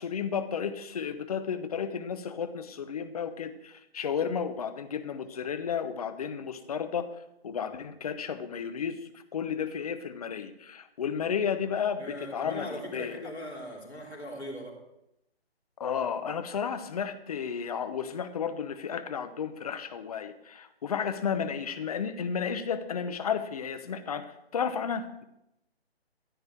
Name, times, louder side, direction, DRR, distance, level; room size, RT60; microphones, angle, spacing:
voice 1, 0.0-7.1 7.4-13.2 15.8-25.2, left 7 dB, 35° left, 10 dB, 1.0 m, -33 dB
voice 2, 12.0-14.8, equal, 90° left, 0 dB, 3.5 m, -40 dB
14.0 x 10.5 x 4.6 m, 0.85 s
figure-of-eight pair, 150°, 32 cm